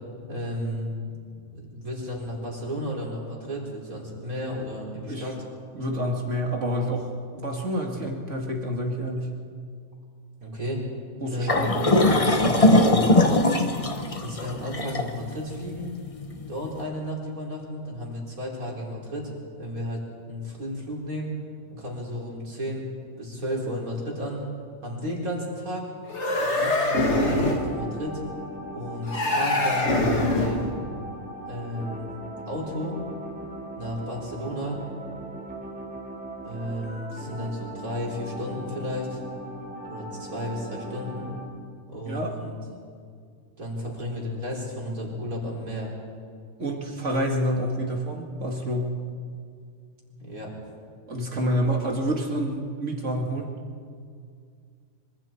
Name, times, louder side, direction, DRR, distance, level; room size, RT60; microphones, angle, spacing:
voice 1, 0.3-0.9 1.3-5.3 10.4-10.8 11.3-13.5 14.2-15.9 16.5-19.3 19.6-20.0 20.3-21.3 21.7-22.9 23.2-24.4 24.8-25.9 26.4-28.2 28.7-30.8 31.5-32.1 32.5-33.0 33.8-34.8 36.4-39.2 39.9-41.3 41.9-42.6 43.6-45.9 50.1-50.5, equal, 80° right, -3 dB, 5.0 m, -33 dB
voice 2, 5.7-9.4 11.2-11.7 42.1-42.3 46.6-49.0 51.1-53.5, equal, 55° right, 1 dB, 2.7 m, -28 dB
sound 1, 11.5-16.7, left 1 dB, 25° left, 1.2 m, -21 dB
sound 2, 26.1-27.7 29.1-30.7, left 2 dB, 55° left, 2.4 m, -24 dB
sound 3, 27.0-41.4, right 1 dB, 5° right, 3.8 m, -39 dB
25.5 x 25.5 x 4.6 m, 2.2 s
omnidirectional pair, 1.5 m